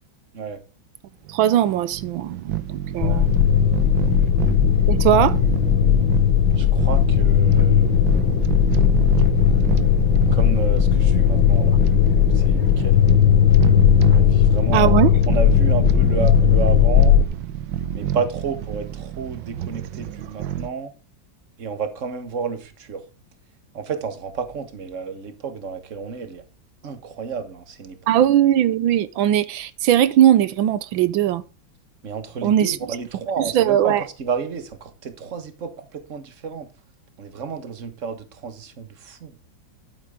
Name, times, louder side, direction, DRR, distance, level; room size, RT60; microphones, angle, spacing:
sound 1, 1.3-20.7, right 10 dB, 70° right, 1.4 m, -28 dB
voice 1, 1.3-3.3 4.9-5.3 14.7-15.1 28.1-31.4 32.4-32.8 33.5-34.0, right 11 dB, 90° right, 1.5 m, -19 dB
sound 2, 3.0-17.2, left 9 dB, 80° left, 1.5 m, -17 dB
voice 2, 3.0-3.3 4.2-4.3 6.6-8.0 8.3-8.5 10.3-11.8 12.3-13.0 14.1-15.0 15.3-17.1 17.9-20.9 21.6-23.0 23.7-26.4 26.8-28.1 32.0-36.7 37.2-39.3, right 5 dB, 40° right, 1.7 m, -31 dB
12.0 x 9.0 x 3.7 m
omnidirectional pair, 2.1 m